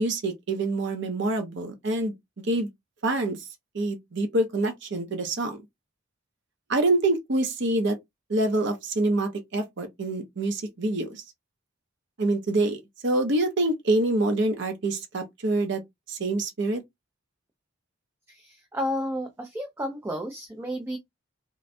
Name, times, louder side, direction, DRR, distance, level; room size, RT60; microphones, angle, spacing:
voice 1, 0.0-2.7 3.0-3.5 3.7-5.6 6.7-8.0 8.3-11.2 12.2-15.8 16.1-16.8, right 2 dB, 65° right, 0.8 m, -26 dB
voice 2, 18.3-21.0, equal, 10° right, 0.4 m, -32 dB
3.1 x 2.2 x 2.5 m
head